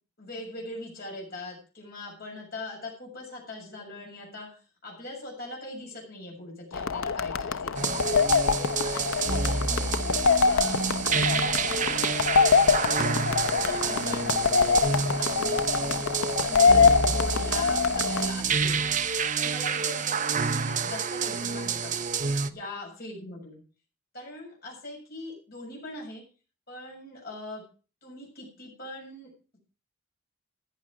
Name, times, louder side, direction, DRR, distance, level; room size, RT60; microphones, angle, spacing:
voice 1, 0.2-8.2 8.6-10.0 10.4-12.0 12.6-14.8 15.2-18.9 19.4-22.1 22.5-23.6 24.1-26.2 26.7-27.7 28.0-29.3, left 2 dB, 45° left, -1 dB, 6.9 m, -41 dB
sound 1, 6.7-18.3, left 5 dB, 70° left, 0.7 m, -24 dB
sound 2, 7.7-22.5, right 5 dB, 35° right, 0.6 m, -28 dB
14.5 x 9.9 x 4.8 m, 0.35 s
head